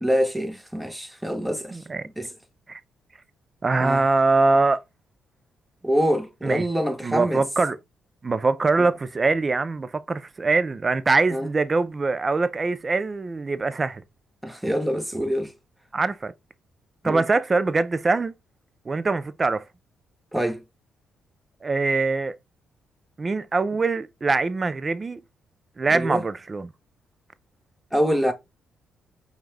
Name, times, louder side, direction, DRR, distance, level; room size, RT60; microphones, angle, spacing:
voice 1, 0.0-1.8 2.2-2.3 3.8-4.0 5.8-7.4 11.3-11.5 14.4-15.5 17.0-17.2 20.3-20.6 25.9-26.2 27.9-28.3, equal, 5° right, 1.0 m, -25 dB
voice 2, 1.7-2.0 2.7-2.8 3.6-4.8 6.4-6.7 7.0-7.8 8.2-14.0 15.9-16.3 17.0-18.3 18.9-19.6 21.6-22.3 23.2-25.2 25.8-26.7, right 3 dB, 35° right, 0.5 m, -23 dB
5.1 x 2.4 x 3.3 m
hypercardioid pair, 50°, 0 cm